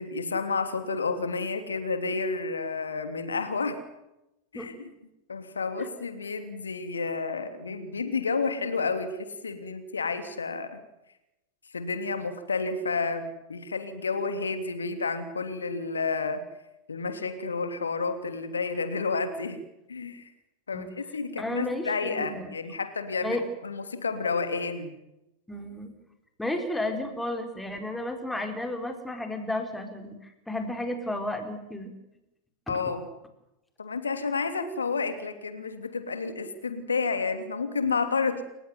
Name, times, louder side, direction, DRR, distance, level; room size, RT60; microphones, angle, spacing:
voice 1, 0.0-3.8 4.5-4.9 5.3-10.8 11.7-16.4 16.9-19.6 19.9-20.3 20.7-24.9 32.7-33.1 33.8-38.4, left 4 dB, 75° left, 8 dB, 2.9 m, -30 dB
voice 2, 21.4-22.5 23.2-23.4 25.5-25.9 26.4-31.9 32.7-32.8, left 1 dB, 5° left, 5 dB, 4.4 m, -33 dB
29.5 x 16.0 x 9.6 m, 0.93 s
figure-of-eight pair, 90°, 0 cm